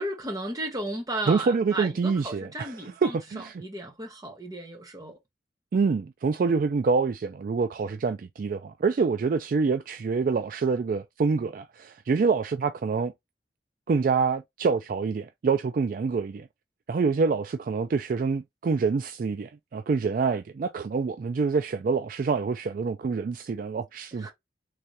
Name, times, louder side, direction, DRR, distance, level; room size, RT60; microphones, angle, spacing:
voice 1, 0.0-3.2 3.6-5.2 24.2-24.3, right 1 dB, 20° right, 1.5 m, -34 dB
voice 2, 1.3-3.6 5.7-13.1 13.9-16.5 16.9-24.3, right 4 dB, 50° right, 0.3 m, -26 dB
3.5 x 3.2 x 2.7 m
head